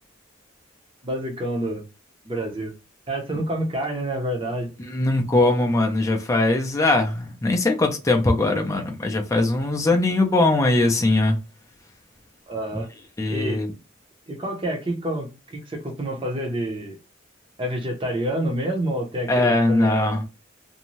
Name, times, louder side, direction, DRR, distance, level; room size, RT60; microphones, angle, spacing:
voice 1, 1.0-1.8 2.2-2.7 3.1-4.7 12.5-12.9 13.3-13.6 14.3-17.0 17.6-20.2, right 1 dB, 25° right, 0.7 m, -28 dB
voice 2, 4.9-11.4 13.2-13.7 19.3-20.2, left 2 dB, 15° left, 0.4 m, -21 dB
2.6 x 2.2 x 3.0 m
head